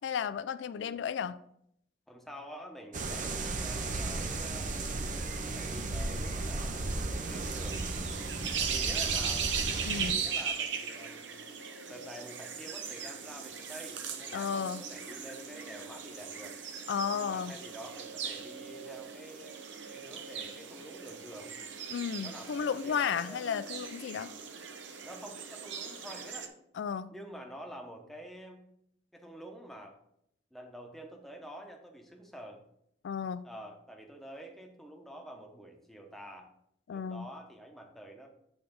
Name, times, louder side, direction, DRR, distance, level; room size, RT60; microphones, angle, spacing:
voice 1, 0.0-1.4 9.9-10.2 14.3-14.8 16.9-17.5 21.9-24.3 26.8-27.1 33.0-33.5 36.9-37.3, left 7 dB, 70° left, 0.3 m, -33 dB
voice 2, 2.1-7.8 8.6-9.5 10.0-11.3 11.9-16.6 17.1-19.6 19.9-21.5 22.2-23.5 25.0-26.5 27.1-28.6 29.1-30.0 30.5-32.6 33.4-36.5 36.9-38.3, equal, ahead, 0.9 m, -48 dB
sound 1, 2.9-10.1, right 2 dB, 45° right, 0.6 m, -35 dB
sound 2, 7.2-26.5, right 6 dB, 70° right, 0.8 m, -38 dB
8.8 x 3.4 x 5.2 m
head